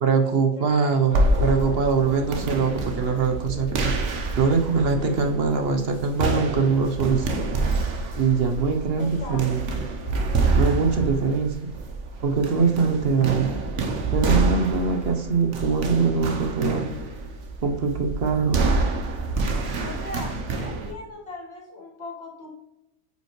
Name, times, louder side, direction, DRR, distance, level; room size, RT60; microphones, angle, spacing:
voice 1, 0.0-3.9 4.3-7.3 8.1-9.6 10.5-11.6 12.2-13.5 14.1-16.8 17.6-18.6, right 5 dB, 60° right, 5 dB, 1.0 m, -22 dB
sound 1, 1.1-20.9, right 2 dB, 75° right, 1.2 m, -27 dB
voice 2, 1.2-1.7 9.0-9.4 19.8-22.6, left 2 dB, 60° left, -1 dB, 2.0 m, -39 dB
8.7 x 5.6 x 3.1 m, 0.91 s
omnidirectional pair, 1.2 m